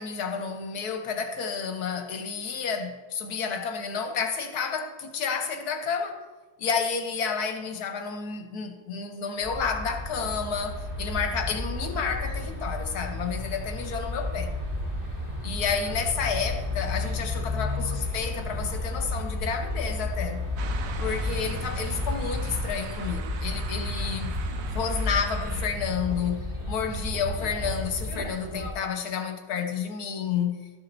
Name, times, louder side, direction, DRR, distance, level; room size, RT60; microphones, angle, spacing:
voice 1, 0.0-6.2 6.6-14.5 15.4-20.4 21.0-24.3 24.7-30.6, left 6 dB, 70° left, 1.4 m, -30 dB
sound 1, 9.4-28.7, left 2 dB, 10° right, 2.0 m, -32 dB
sound 2, 20.6-25.7, right 7 dB, 65° right, 0.9 m, -41 dB
13.0 x 7.4 x 2.7 m
omnidirectional pair, 1.8 m